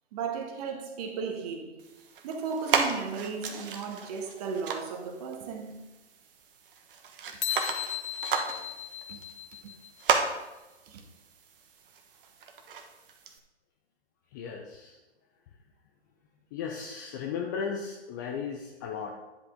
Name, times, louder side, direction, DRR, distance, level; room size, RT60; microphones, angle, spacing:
voice 1, 0.1-1.7 2.2-5.8 9.1-9.2 9.6-9.7 10.9-11.0, right 5 dB, 35° right, 1.4 m, -35 dB
sound 1, 1.8-13.4, right 6 dB, 50° right, 1.2 m, -34 dB
sound 2, 7.4-10.0, left 10 dB, 75° left, 0.6 m, -36 dB
voice 2, 14.3-15.0 16.5-19.2, left 6 dB, 20° left, 0.4 m, -35 dB
10.0 x 7.5 x 3.6 m
figure-of-eight pair, 130°, 34 cm